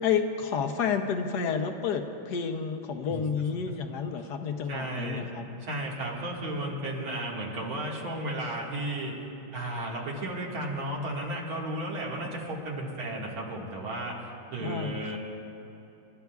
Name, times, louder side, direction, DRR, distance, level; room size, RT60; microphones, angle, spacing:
voice 1, 0.0-5.5 14.6-15.2, left 6 dB, 65° left, 6 dB, 1.2 m, -30 dB
voice 2, 4.7-5.3 5.6-9.2 9.5-14.2 14.5-15.2, right 1 dB, 80° right, -3 dB, 2.8 m, -34 dB
28.5 x 12.5 x 2.4 m, 3.0 s
omnidirectional pair, 2.2 m